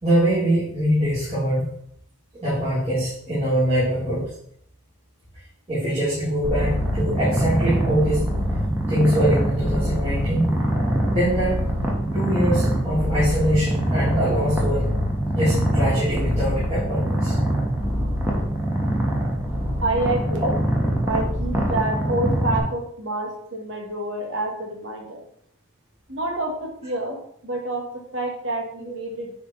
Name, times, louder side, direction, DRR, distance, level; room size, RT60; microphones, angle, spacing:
voice 1, 0.0-1.7 2.4-4.3 5.7-8.2 8.9-10.5 11.1-11.6 12.1-14.9 15.3-17.3 18.9-19.0, equal, 35° right, -11 dB, 3.3 m, -23 dB
Purr, 6.4-22.6, equal, 10° right, 1.6 m, -24 dB
voice 2, 19.8-20.6 21.1-25.2 26.1-29.3, right 2 dB, 70° right, 1 dB, 1.9 m, -28 dB
9.7 x 4.8 x 4.0 m, 0.66 s
head